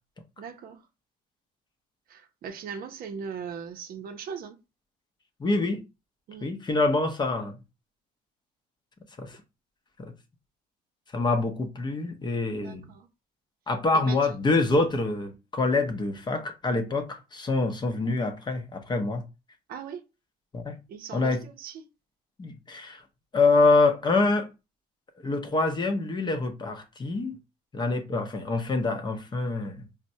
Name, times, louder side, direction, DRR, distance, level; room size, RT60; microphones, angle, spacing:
voice 1, 0.4-0.8 2.1-4.6 6.3-6.5 12.5-13.1 13.9-14.2 19.7-20.0 20.9-21.8, right 6 dB, 60° right, 0.6 m, -39 dB
voice 2, 5.4-5.8 6.4-7.6 9.2-9.4 10.0-10.1 11.1-12.9 13.7-19.2 20.5-20.8 21.1-21.4 22.4-23.0 23.3-24.5 25.2-27.4 27.7-29.8, left 3 dB, 25° left, 0.6 m, -26 dB
4.1 x 2.0 x 2.6 m
cardioid pair, 110°, 17 cm